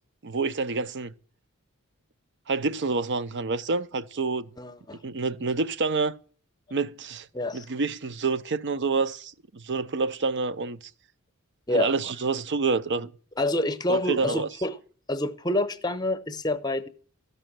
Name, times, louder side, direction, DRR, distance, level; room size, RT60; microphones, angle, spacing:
voice 1, 0.2-1.1 2.5-4.5 5.0-6.2 6.7-7.3 7.5-10.9 11.7-13.1 13.9-14.5, right 4 dB, 55° right, 0.6 m, -28 dB
voice 2, 4.6-5.0 7.3-7.6 11.7-11.9 13.4-14.8 15.1-16.9, left 1 dB, 20° left, 0.8 m, -27 dB
13.5 x 5.5 x 7.5 m
head